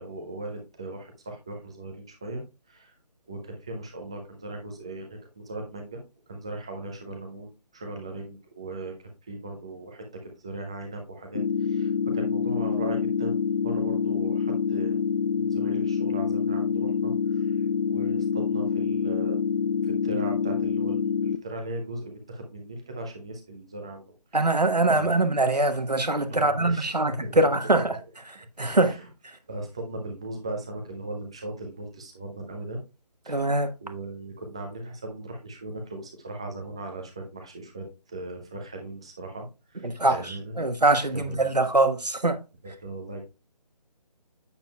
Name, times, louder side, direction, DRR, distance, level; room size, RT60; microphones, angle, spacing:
voice 1, 0.0-2.4 2.7-2.9 3.3-6.0 6.3-13.4 13.6-15.0 15.3-17.6 17.9-19.4 19.8-24.0 24.9-25.1 26.3-27.7 28.7-29.1 29.5-32.8 33.2-33.5 33.8-40.6 41.1-41.5 42.8-43.2, right 2 dB, 10° right, 0.5 m, -38 dB
sound 1, 11.3-21.4, left 6 dB, 75° left, 0.7 m, -26 dB
voice 2, 24.3-28.0 28.2-29.0 29.2-29.4 33.3-33.7 39.8-42.4, right 2 dB, 85° right, 1.2 m, -23 dB
8.0 x 7.2 x 2.3 m
figure-of-eight pair, 150°, 20 cm